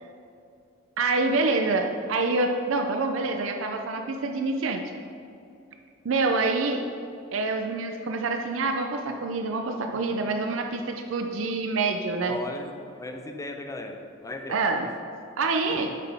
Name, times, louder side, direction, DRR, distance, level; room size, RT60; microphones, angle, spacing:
voice 1, 1.0-4.8 6.0-6.8 7.3-12.4 14.5-14.9 15.4-15.9, right 3 dB, 75° right, 4 dB, 0.5 m, -26 dB
voice 2, 12.3-14.6 15.7-15.9, left 2 dB, 15° left, 3 dB, 0.6 m, -37 dB
8.2 x 5.8 x 3.5 m, 2.5 s
head